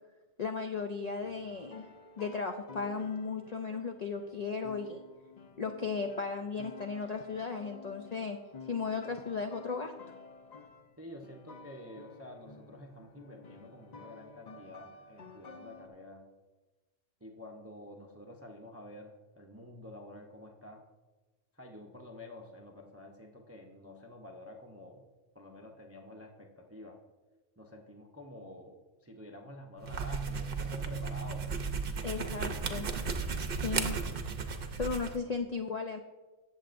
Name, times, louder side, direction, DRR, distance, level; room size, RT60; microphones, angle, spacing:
voice 1, 0.4-1.9 2.2-5.0 5.6-8.4 8.7-9.9 32.0-32.9 33.5-34.0 34.7-36.0, left 5 dB, 85° left, 5 dB, 0.3 m, -35 dB
sound 1, 1.2-11.0 11.2-15.9, left 4 dB, 40° left, 0.7 m, -52 dB
voice 2, 11.0-16.3 17.2-20.8 21.5-25.1 25.3-27.0 27.6-31.5, left 1 dB, 15° right, 2 dB, 0.5 m, -49 dB
sound 2, 29.8-35.2, right 5 dB, 50° right, 0.8 m, -35 dB
16.0 x 7.1 x 2.5 m, 1.2 s
omnidirectional pair, 1.4 m